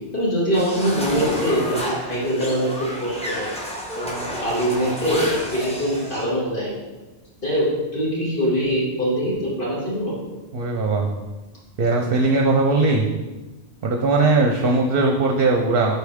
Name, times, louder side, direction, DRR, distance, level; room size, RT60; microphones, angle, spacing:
voice 1, 0.1-3.5 4.0-6.8 7.4-7.7 7.9-10.2, equal, 50° left, -7 dB, 2.4 m, -23 dB
sound 1, 0.5-6.3, equal, 5° left, 1.1 m, -30 dB
voice 2, 10.5-11.1 11.8-13.1 13.8-16.0, right 3 dB, 60° right, 1 dB, 0.8 m, -19 dB
8.2 x 4.6 x 3.5 m, 1.2 s
omnidirectional pair, 1.1 m